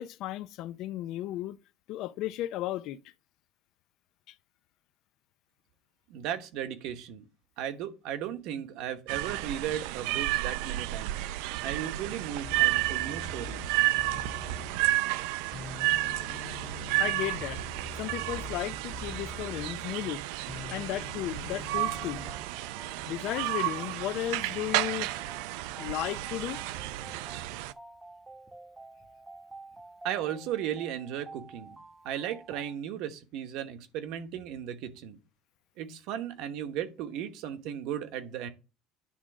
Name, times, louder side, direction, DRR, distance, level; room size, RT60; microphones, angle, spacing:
voice 1, 0.0-1.6 1.9-3.0 4.3-4.4 17.0-17.6 18.0-20.2 20.7-22.2 23.1-25.1 25.8-26.6, left 14 dB, 50° left, 0.5 m, -34 dB
voice 2, 6.1-7.2 7.6-11.3 11.6-13.8 30.0-31.8 32.0-35.2 35.8-38.5, right 10 dB, 60° right, 1.1 m, -36 dB
sound 1, 9.1-27.7, right 17 dB, 90° right, 0.4 m, -32 dB
sound 2, 12.4-15.2 15.5-20.2 20.5-22.3, left 4 dB, 20° left, 1.2 m, -44 dB
sound 3, 21.4-32.7, right 2 dB, 10° right, 0.9 m, -49 dB
10.0 x 3.8 x 6.1 m
cardioid pair, 175°, 0 cm